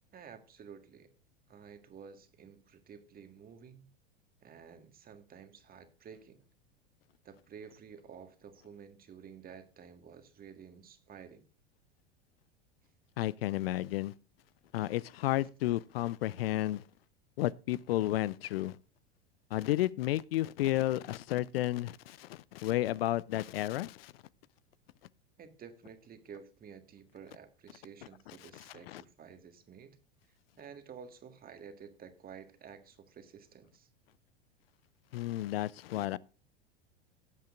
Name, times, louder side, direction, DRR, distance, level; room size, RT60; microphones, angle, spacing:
voice 1, 0.1-1.1 1.5-3.9 4.4-6.4 7.2-11.4 25.4-30.0 30.6-33.9, right 7 dB, 30° right, 1.7 m, -52 dB
voice 2, 13.2-14.1 14.7-16.8 17.4-18.8 19.5-24.1 28.9-29.0 35.1-36.2, left 15 dB, 70° left, 0.5 m, -32 dB
18.0 x 7.7 x 2.5 m
hypercardioid pair, 90°, 31 cm